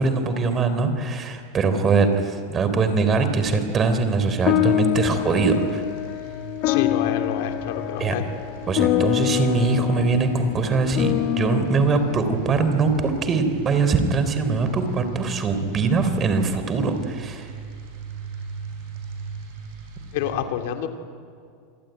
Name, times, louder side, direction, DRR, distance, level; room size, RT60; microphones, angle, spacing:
voice 1, 0.0-5.8 8.0-8.1 8.7-17.5, right 4 dB, 25° right, 9 dB, 3.5 m, -22 dB
sound 1, 3.2-20.3, right 4 dB, 65° right, 7.9 m, -39 dB
sound 2, 4.5-13.1, left 15 dB, 50° left, 1.0 m, -26 dB
voice 2, 6.6-8.3 20.1-20.9, left 10 dB, 70° left, 6 dB, 2.6 m, -28 dB
27.5 x 21.0 x 9.2 m, 2.2 s
supercardioid pair, 120°, 0 cm